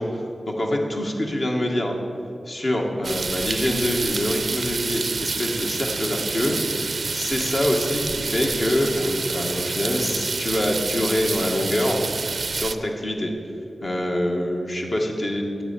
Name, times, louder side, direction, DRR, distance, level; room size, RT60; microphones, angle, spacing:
voice 1, 0.0-2.0 2.5-12.0 12.5-13.3 13.8-15.6, left 1 dB, 45° left, 0 dB, 1.9 m, -25 dB
sound 1, 3.0-12.8, right 4 dB, 65° right, 0.5 m, -28 dB
10.0 x 7.9 x 8.6 m, 2.7 s
wide cardioid pair, 95°, 0 cm